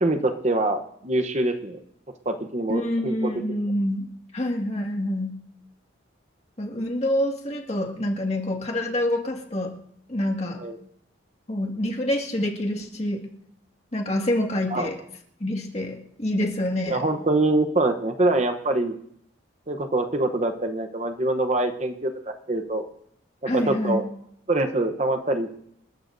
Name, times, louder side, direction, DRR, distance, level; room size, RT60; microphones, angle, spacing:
voice 1, 0.0-1.8 2.3-3.6 10.6-10.8 14.7-14.9 16.9-19.0 19.7-22.9 23.4-24.0 24.5-25.6, right 2 dB, 35° right, 7 dB, 0.9 m, -24 dB
voice 2, 2.7-4.1 4.3-5.4 6.6-9.7 10.1-10.6 11.5-13.2 13.9-15.0 15.4-17.0 23.5-24.0, left 1 dB, 35° left, 0 dB, 2.0 m, -26 dB
29.0 x 12.5 x 2.7 m, 0.70 s
head